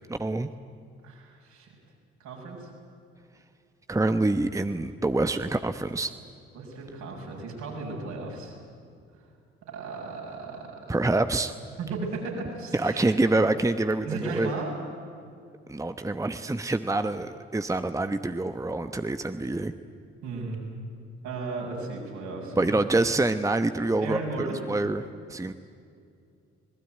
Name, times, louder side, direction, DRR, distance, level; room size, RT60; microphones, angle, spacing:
voice 1, 0.1-0.5 3.9-6.1 10.9-11.5 12.7-14.5 15.7-19.7 22.6-25.5, right 2 dB, 10° right, 9 dB, 1.1 m, -26 dB
voice 2, 1.0-1.7 2.2-2.7 6.5-8.5 9.7-10.7 11.8-13.2 14.0-14.7 20.2-20.6 21.2-22.7 24.0-24.6, right 3 dB, 65° right, -1 dB, 7.0 m, -35 dB
26.0 x 20.0 x 9.3 m, 2.4 s
figure-of-eight pair, 45°, 31 cm